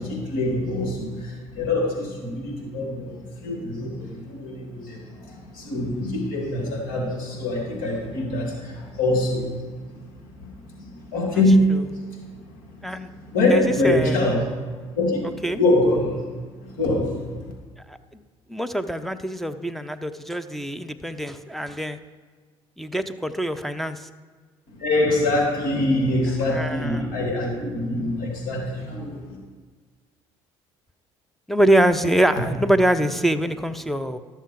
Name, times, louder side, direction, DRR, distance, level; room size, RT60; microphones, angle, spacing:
voice 1, 0.0-10.0 10.4-13.0 13.3-14.5 14.9-16.2 16.6-17.4 24.7-29.4 32.4-32.5, left 1 dB, 65° left, -1 dB, 3.0 m, -24 dB
voice 2, 13.5-14.2 15.4-15.6 17.9-18.2 18.5-22.0 22.8-24.1 26.5-27.1 31.5-34.2, right 1 dB, ahead, 7 dB, 0.7 m, -24 dB
12.5 x 6.8 x 4.7 m, 1.5 s
hypercardioid pair, 65°, 15 cm